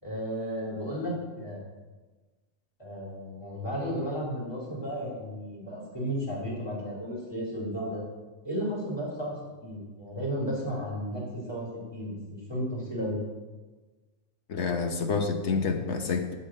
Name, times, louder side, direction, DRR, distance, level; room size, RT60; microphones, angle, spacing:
voice 1, 0.0-1.6 2.8-8.0 8.4-9.3 9.6-11.7 11.9-13.2, equal, 20° left, -4 dB, 3.2 m, -33 dB
voice 2, 14.5-16.3, left 5 dB, 60° left, 5 dB, 1.3 m, -28 dB
12.0 x 4.6 x 7.6 m, 1.3 s
omnidirectional pair, 1.4 m